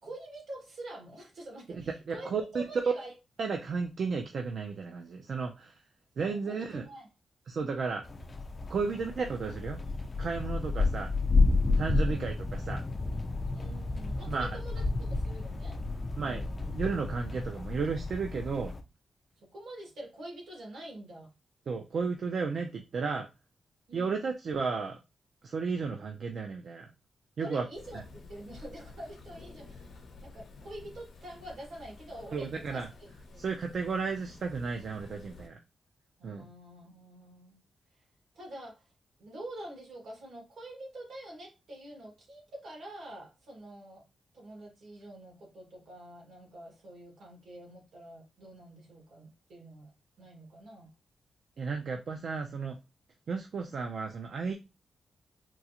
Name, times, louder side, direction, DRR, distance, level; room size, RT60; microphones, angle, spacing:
voice 1, 0.0-3.2 6.2-7.1 11.9-12.4 13.5-15.8 16.2-16.6 19.4-21.3 23.9-24.3 27.4-33.5 36.2-37.6 37.9-38.0 38.3-38.9 39.2-44.0 44.3-49.9 50.2-50.9, right 1 dB, 75° right, -1 dB, 1.7 m, -46 dB
voice 2, 1.7-2.6 3.4-5.8 6.2-6.8 7.5-8.1 8.7-9.8 10.2-11.1 11.8-12.4 12.7-12.8 14.3-14.5 16.2-18.7 21.7-23.3 23.9-25.0 25.4-26.9 27.4-27.6 27.9-28.0 32.3-32.9 33.4-35.6 36.2-36.4 51.6-52.8 53.3-54.5, right 5 dB, 55° right, 4 dB, 0.4 m, -33 dB
sound 1, 8.0-18.8, left 3 dB, 25° left, 0.3 m, -31 dB
sound 2, 27.7-35.5, left 3 dB, 80° left, 0.8 m, -51 dB
3.8 x 2.4 x 2.8 m, 0.26 s
wide cardioid pair, 150°, 0 cm